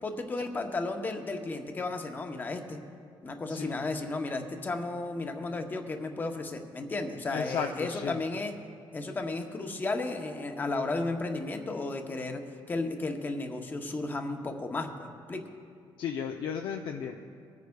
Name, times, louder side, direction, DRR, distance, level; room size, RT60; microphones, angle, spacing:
voice 1, 0.0-2.8 3.2-8.5 8.9-12.4 12.7-15.4, left 2 dB, 20° left, 4 dB, 0.8 m, -34 dB
voice 2, 7.3-8.2 16.0-17.2, left 7 dB, 65° left, 2 dB, 0.6 m, -34 dB
25.5 x 9.5 x 2.3 m, 2.3 s
cardioid pair, 175°, 9 cm